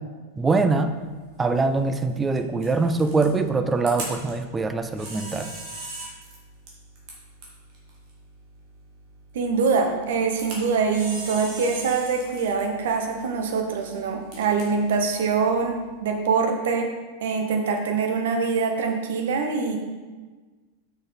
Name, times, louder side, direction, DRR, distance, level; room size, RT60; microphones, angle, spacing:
voice 1, 0.4-0.9 1.4-5.5, right 3 dB, 15° right, 8 dB, 0.5 m, -23 dB
Camera, 0.8-16.2, right 2 dB, 40° right, 2.3 m, -42 dB
voice 2, 9.3-16.9 17.2-19.8, right 5 dB, 55° right, 4 dB, 1.0 m, -24 dB
6.5 x 5.8 x 4.3 m, 1.3 s
figure-of-eight pair, 90°, 0 cm